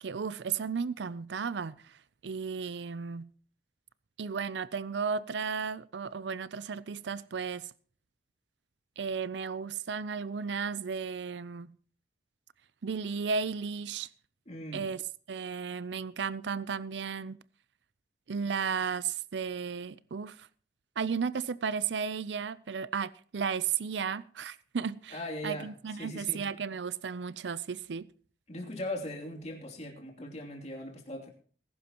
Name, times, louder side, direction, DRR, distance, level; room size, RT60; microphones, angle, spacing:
voice 1, 0.0-3.3 4.2-7.7 9.0-11.7 12.8-14.1 14.7-15.0 15.3-17.4 18.3-20.5 21.0-28.1, right 6 dB, 75° right, 0.5 m, -34 dB
voice 2, 14.5-14.9 25.1-25.7 26.0-26.4 28.5-31.3, left 1 dB, 40° left, 2.8 m, -39 dB
20.5 x 11.5 x 3.0 m
head